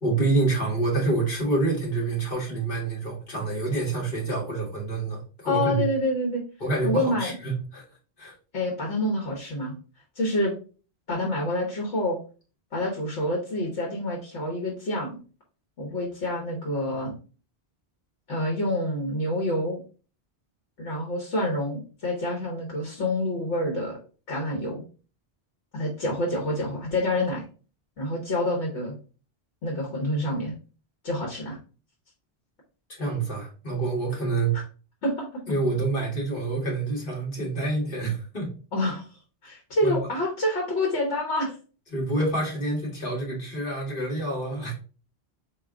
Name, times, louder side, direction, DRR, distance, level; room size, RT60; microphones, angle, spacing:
voice 1, 0.0-5.9 6.6-7.8 8.2-8.3 32.9-34.5 35.5-38.5 39.8-40.0 41.9-44.7, right 3 dB, 50° left, 1.9 m, -27 dB
voice 2, 5.4-6.4 6.8-7.3 8.5-9.7 10.1-10.5 11.1-12.2 12.7-15.2 15.8-17.1 18.3-19.8 20.8-24.0 24.3-24.8 25.7-27.4 28.0-29.0 29.6-30.5 31.0-31.6 35.0-35.4 38.7-39.0 39.4-41.5, left 1 dB, 85° left, 1.5 m, -27 dB
4.6 x 2.9 x 3.6 m
omnidirectional pair, 1.1 m